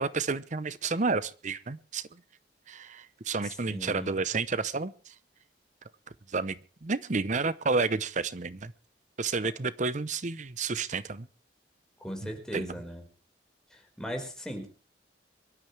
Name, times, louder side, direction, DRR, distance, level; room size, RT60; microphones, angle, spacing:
voice 1, 0.0-2.1 2.7-5.1 6.3-8.7 9.2-11.3 12.2-12.8, right 4 dB, 45° right, 15 dB, 0.8 m, -31 dB
voice 2, 3.7-4.1 12.0-13.0 13.7-14.7, equal, 5° left, 2 dB, 4.9 m, -38 dB
24.5 x 12.5 x 3.4 m, 0.38 s
head